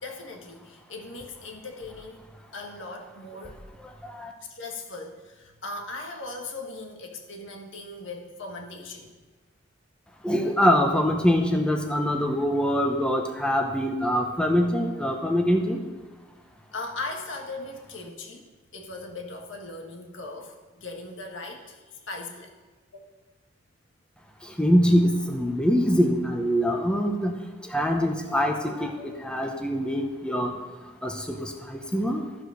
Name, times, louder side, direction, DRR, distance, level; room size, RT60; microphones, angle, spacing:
voice 1, 0.0-2.2 2.5-3.6 4.5-9.1 16.7-22.5, left 2 dB, 85° left, 2 dB, 1.6 m, -39 dB
voice 2, 10.2-15.8 24.6-27.3 27.7-30.5 31.0-32.2, equal, 5° left, 2 dB, 0.8 m, -24 dB
13.0 x 5.0 x 6.4 m, 1.3 s
head